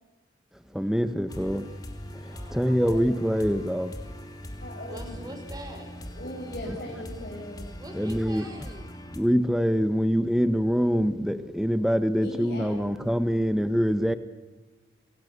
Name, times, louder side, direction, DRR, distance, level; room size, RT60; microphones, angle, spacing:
voice 1, 0.7-1.7 2.2-3.9 7.9-8.5 9.2-14.1, equal, 5° right, 1.3 m, -25 dB
sound 1, 1.3-9.2, equal, 20° left, 2.9 m, -41 dB
voice 2, 2.1-2.7 4.8-5.9 7.8-8.9, right 1 dB, 20° right, 5.5 m, -43 dB
voice 3, 2.6-3.3 4.6-5.2 6.1-7.7 12.1-13.0, left 1 dB, 50° left, 6.5 m, -39 dB
29.5 x 26.0 x 6.9 m
head